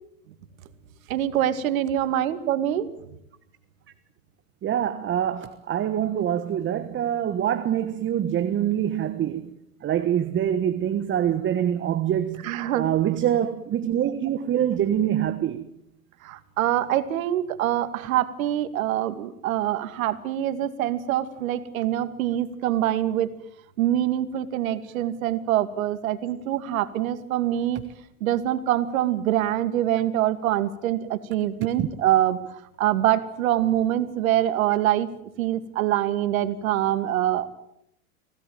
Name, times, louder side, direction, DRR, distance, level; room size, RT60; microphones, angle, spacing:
voice 1, 1.1-2.9 12.4-12.9 16.2-23.3 23.8-27.8 28.2-32.4 32.8-35.1 35.4-37.5, right 12 dB, 65° right, 2.5 m, -24 dB
voice 2, 4.6-9.5 9.8-12.4 12.7-15.6 31.8-31.9, right 10 dB, 25° right, 1.4 m, -25 dB
25.5 x 17.5 x 8.9 m
hypercardioid pair, 110°, 44 cm